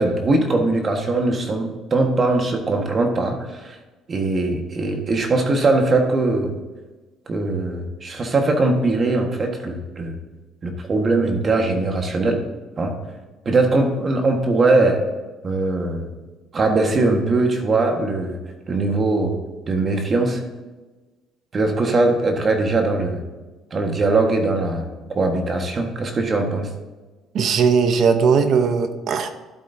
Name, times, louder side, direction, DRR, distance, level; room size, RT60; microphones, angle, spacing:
voice 1, 0.0-3.7 4.1-6.5 7.3-10.2 10.6-12.4 12.8-12.9 13.4-15.0 15.4-16.1 16.5-18.4 18.7-19.3 19.6-20.4 21.5-23.2 23.7-26.7, right 2 dB, 35° right, 3 dB, 1.5 m, -21 dB
voice 2, 27.3-29.3, right 6 dB, 55° right, 9 dB, 0.9 m, -18 dB
12.5 x 7.7 x 2.8 m, 1.2 s
cardioid pair, 110°, 0 cm